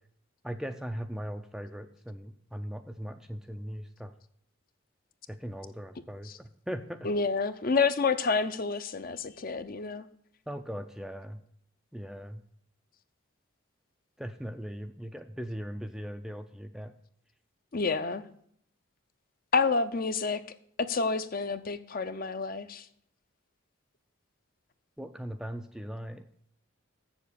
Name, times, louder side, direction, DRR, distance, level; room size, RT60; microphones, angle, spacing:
voice 1, 0.4-4.1 5.3-7.1 10.5-11.4 11.9-12.4 14.2-16.9 25.0-26.2, equal, ahead, 7 dB, 0.4 m, -39 dB
voice 2, 7.0-10.1 17.7-18.2 19.5-20.4 20.9-22.8, left 4 dB, 40° left, 11 dB, 0.6 m, -29 dB
7.2 x 7.1 x 8.2 m, 0.67 s
head